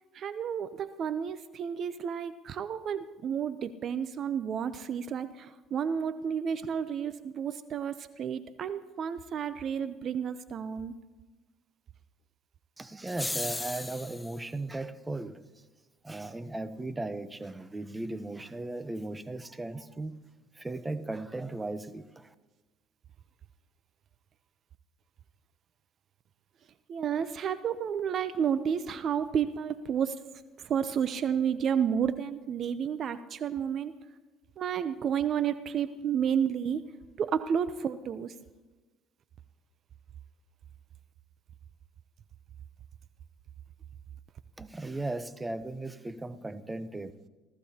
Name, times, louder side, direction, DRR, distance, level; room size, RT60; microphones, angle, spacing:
voice 1, 0.1-10.9 26.9-30.2 30.6-33.9 34.6-36.8 37.2-38.3, right 8 dB, 50° right, 0.6 m, -31 dB
voice 2, 12.8-15.4 16.0-20.1 20.5-22.3 44.6-47.1, right 2 dB, 15° right, 0.8 m, -37 dB
sound 1, 13.1-14.4, left 2 dB, 10° left, 0.4 m, -36 dB
27.5 x 14.5 x 2.9 m
supercardioid pair, 90°, 0 cm